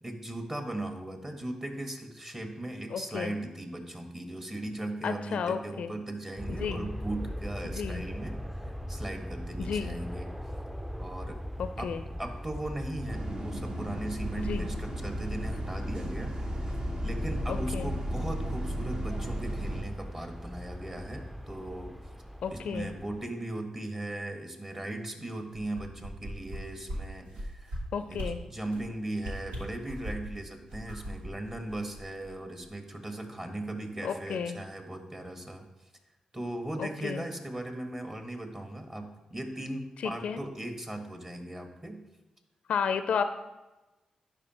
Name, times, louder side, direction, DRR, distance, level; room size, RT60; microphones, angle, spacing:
voice 1, 0.0-8.4 8.9-10.3 11.0-11.4 11.8-11.9 12.2-16.7 17.0-21.9 22.5-27.7 28.1-35.7 36.3-42.0, right 1 dB, 25° right, 4 dB, 1.4 m, -38 dB
voice 2, 2.9-3.3 5.0-5.9 6.5-6.8 7.7-8.0 9.6-10.0 11.6-12.0 14.5-14.7 17.5-17.9 22.4-22.9 27.9-28.4 34.0-34.6 36.8-37.2 40.0-40.4 42.7-43.2, left 6 dB, 70° left, 10 dB, 0.4 m, -32 dB
sound 1, 6.4-23.2, equal, 5° right, 0.5 m, -40 dB
Bus, 13.1-19.8, equal, 40° right, 0.9 m, -34 dB
sound 2, 25.5-26.6 26.9-27.0 27.3-27.8 28.1-28.3 28.7-28.9 29.2-30.3 30.7-32.3 32.6-32.7, equal, 85° right, 1.3 m, -38 dB
11.0 x 4.8 x 3.0 m, 1.0 s
supercardioid pair, 45°, 2 cm